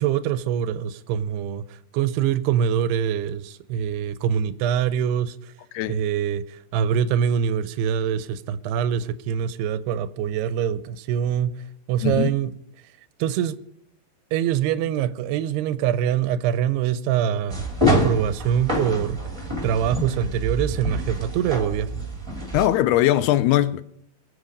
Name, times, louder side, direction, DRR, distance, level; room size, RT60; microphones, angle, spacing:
voice 1, 0.0-1.6 1.9-5.5 5.9-11.5 11.9-12.5 13.2-13.6 14.3-19.2 19.6-22.0, right 9 dB, 80° right, 2.7 m, -24 dB
voice 2, 12.0-12.3 22.5-23.8, left 14 dB, 80° left, 2.5 m, -20 dB
sound 1, 17.5-22.7, equal, 10° right, 2.4 m, -26 dB
23.5 x 7.9 x 5.3 m
omnidirectional pair, 4.7 m